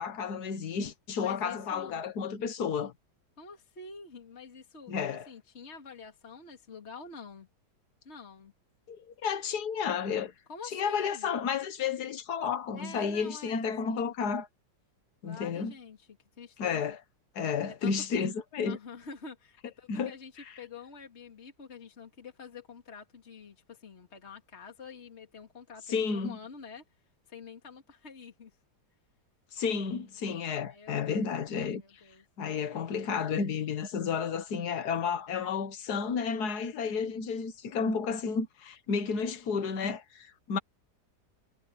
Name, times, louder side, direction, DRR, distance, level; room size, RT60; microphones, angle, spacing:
voice 1, 0.0-2.9 4.9-5.3 8.9-10.3 10.7-14.5 15.2-15.7 16.6-17.0 17.4-18.8 19.9-20.1 25.9-26.4 29.5-31.8 32.4-40.6, left 6 dB, 65° left, 1.9 m, -32 dB
voice 2, 1.2-2.0 3.4-7.5 8.0-8.5 10.5-11.3 12.7-14.1 15.2-16.1 16.4-17.0 17.7-18.3 18.7-20.3 20.6-26.8 27.3-28.6 30.7-32.2 36.8-37.1, left 5 dB, 40° left, 2.5 m, -47 dB
omnidirectional pair, 1.9 m